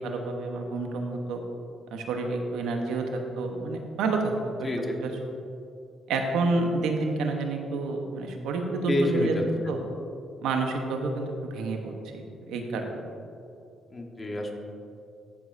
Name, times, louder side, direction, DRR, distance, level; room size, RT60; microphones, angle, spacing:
voice 1, 0.0-1.4 1.9-3.0 3.4-4.3 5.0-5.1 6.1-9.3 9.7-9.8 10.4-11.3 11.5-12.9, right 3 dB, 85° right, 3 dB, 1.0 m, -29 dB
voice 2, 4.6-5.0 8.9-9.7 13.9-14.5, left 1 dB, 30° left, 1 dB, 1.3 m, -28 dB
14.5 x 7.3 x 2.6 m, 2.6 s
cardioid pair, 90°, 0 cm